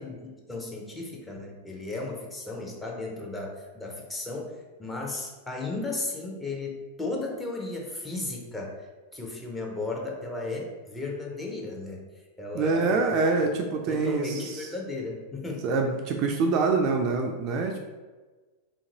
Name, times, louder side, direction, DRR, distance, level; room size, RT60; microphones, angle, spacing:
voice 1, 0.0-8.9 9.1-12.0 12.4-13.2 13.9-15.7, left 2 dB, 10° left, -1 dB, 0.6 m, -35 dB
voice 2, 12.5-14.7 15.6-17.8, right 3 dB, 40° right, 3 dB, 0.3 m, -25 dB
2.8 x 2.5 x 2.8 m, 1.3 s
figure-of-eight pair, 90°, 0 cm